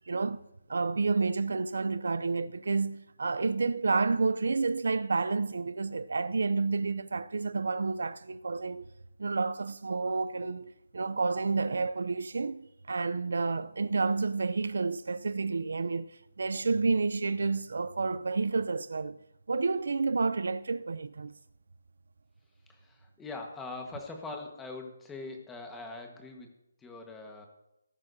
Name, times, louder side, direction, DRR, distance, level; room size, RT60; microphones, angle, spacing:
voice 1, 0.1-0.4 0.7-8.9 9.2-19.2 19.5-21.3, right 4 dB, 70° right, 0.5 m, -30 dB
voice 2, 22.7-26.5 26.8-27.5, left 3 dB, 5° left, 1.4 m, -42 dB
19.0 x 10.5 x 2.7 m
hypercardioid pair, 170°, 0 cm